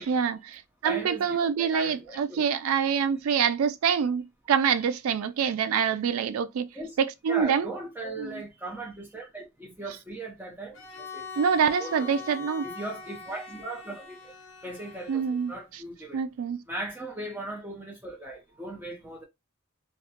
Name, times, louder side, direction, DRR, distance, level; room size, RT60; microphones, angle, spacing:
voice 1, 0.1-6.7 7.0-7.7 8.2-8.4 11.4-12.7 15.1-15.5 16.1-16.6, right 7 dB, 85° right, 0.3 m, -26 dB
voice 2, 0.8-2.5 3.3-3.4 6.7-7.0 7.3-10.8 11.1-11.2 11.8-12.1 12.6-14.2 14.6-16.2 16.7-19.2, right 2 dB, 10° right, 0.5 m, -38 dB
Bowed string instrument, 10.7-15.7, left 5 dB, 65° left, 0.5 m, -42 dB
2.3 x 2.1 x 2.7 m
head